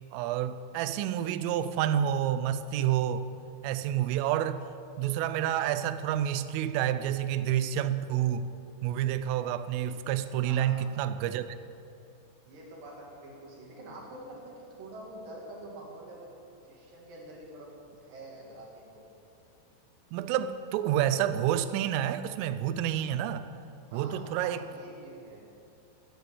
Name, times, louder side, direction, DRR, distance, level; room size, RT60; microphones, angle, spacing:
voice 1, 0.1-3.2 3.6-4.6 5.0-8.5 8.8-11.5 20.1-23.5 23.9-24.6, right 11 dB, 90° right, 3.2 m, -29 dB
voice 2, 10.4-10.9 12.5-16.3 16.6-19.0 23.9-25.5, right 1 dB, 50° right, 3.5 m, -46 dB
13.0 x 9.6 x 8.3 m
omnidirectional pair, 5.6 m